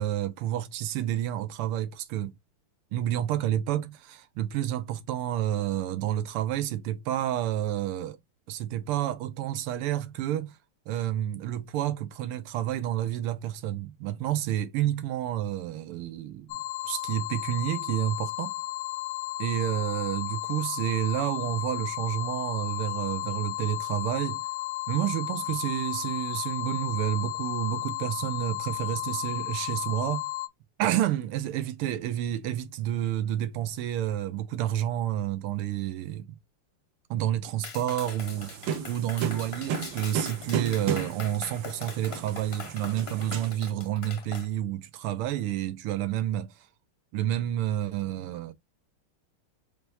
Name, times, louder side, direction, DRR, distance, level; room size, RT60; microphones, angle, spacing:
voice 1, 0.0-2.3 2.9-8.2 8.5-10.6 10.9-18.6 19.4-24.4 24.9-30.3 30.8-36.4 37.1-46.7 47.1-48.5, right 12 dB, 85° right, 1.6 m, -30 dB
sound 1, 16.5-30.5, left 17 dB, 75° left, 1.2 m, -34 dB
Clapping, 37.6-44.5, left 5 dB, 50° left, 0.7 m, -42 dB
sound 2, 38.2-43.5, right 8 dB, 70° right, 1.0 m, -34 dB
4.4 x 3.3 x 2.7 m
omnidirectional pair, 2.4 m